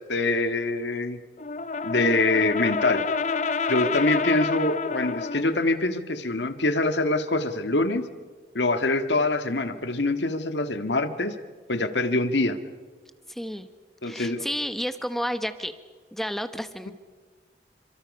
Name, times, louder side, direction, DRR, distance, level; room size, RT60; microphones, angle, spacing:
voice 1, 0.1-1.2 1.8-3.0 3.7-8.1 8.5-11.4 11.7-12.6 14.0-14.5, left 2 dB, 90° left, 8 dB, 1.9 m, -24 dB
Brass instrument, 1.4-5.6, left 4 dB, 40° left, 0.7 m, -28 dB
voice 2, 13.3-13.7 14.0-15.7 16.1-16.9, equal, ahead, 9 dB, 1.0 m, -31 dB
28.5 x 26.5 x 5.5 m, 1.4 s
head